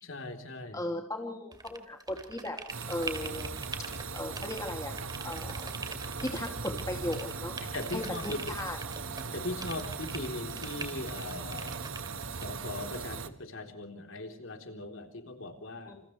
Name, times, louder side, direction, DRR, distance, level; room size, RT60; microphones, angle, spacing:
voice 1, 0.0-0.8 7.6-8.5 9.3-11.7 12.4-16.0, left 2 dB, 65° left, 5 dB, 3.8 m, -39 dB
voice 2, 0.7-2.6 2.9-3.5 4.1-4.9 5.2-5.6 6.2-7.6 7.9-8.8 15.9-16.0, left 1 dB, 15° left, 2 dB, 2.5 m, -36 dB
sound 1, 1.5-4.7 5.0-6.8 7.1-9.3 9.6-12.5, right 3 dB, 20° right, 2.9 m, -43 dB
sound 2, 2.7-13.3, right 4 dB, 70° right, 1.5 m, -39 dB
29.0 x 29.0 x 3.3 m, 0.64 s
head